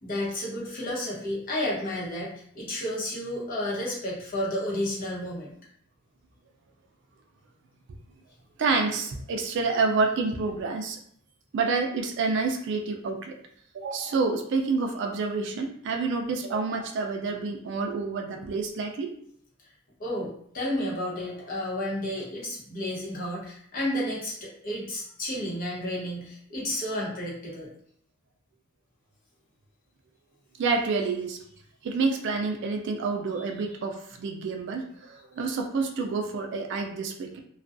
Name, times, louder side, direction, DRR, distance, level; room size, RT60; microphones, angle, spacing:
voice 1, 0.0-5.5 20.0-27.7, left 1 dB, 45° left, -5 dB, 0.8 m, -31 dB
voice 2, 8.6-11.0 11.5-13.4 13.7-19.1 30.6-31.4 31.8-37.4, right 4 dB, 60° right, 4 dB, 0.3 m, -28 dB
2.4 x 2.2 x 2.4 m, 0.66 s
head